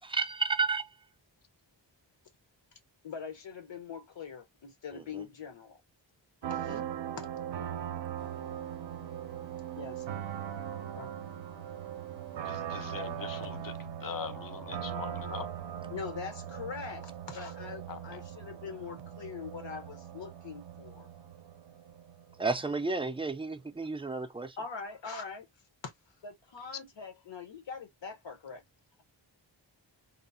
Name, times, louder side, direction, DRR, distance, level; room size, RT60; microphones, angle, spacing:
voice 1, 0.0-0.9 4.9-5.3 6.5-6.8 22.4-24.6, right 4 dB, 15° right, 0.3 m, -32 dB
voice 2, 3.0-5.8 6.5-7.3 9.8-10.0 10.7-11.1 15.9-21.1 24.6-25.5 25.8-25.9 26.2-28.6, left 6 dB, 70° left, 0.9 m, -43 dB
sound 1, 6.4-22.9, right 9 dB, 70° right, 0.5 m, -40 dB
sound 2, 8.2-14.3, left 1 dB, 90° left, 1.5 m, -59 dB
voice 3, 12.4-15.5 17.9-18.2, left 7 dB, 50° left, 0.5 m, -42 dB
2.9 x 2.0 x 2.4 m
wide cardioid pair, 110°, 46 cm